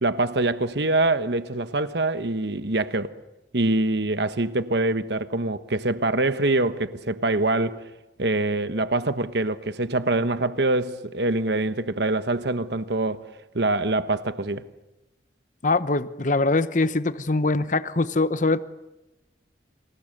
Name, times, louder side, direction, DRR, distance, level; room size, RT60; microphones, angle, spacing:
voice 1, 0.0-3.2 3.5-7.8 8.2-13.2 13.5-14.7, right 2 dB, 65° right, 1.2 m, -24 dB
voice 2, 15.6-18.6, left 3 dB, 45° left, 1.0 m, -23 dB
29.5 x 27.5 x 6.7 m
head